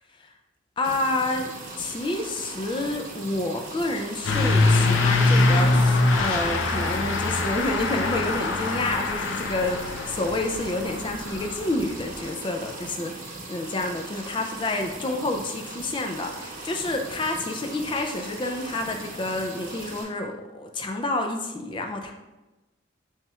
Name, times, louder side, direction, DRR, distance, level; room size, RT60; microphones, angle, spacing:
voice 1, 0.8-22.1, left 2 dB, 25° left, 4 dB, 0.3 m, -29 dB
sound 1, 0.8-20.0, right 2 dB, 45° right, 0.9 m, -39 dB
Truck / Accelerating revving vroom, 4.2-12.2, left 2 dB, 85° left, 0.5 m, -23 dB
7.2 x 2.9 x 2.3 m, 1.1 s
head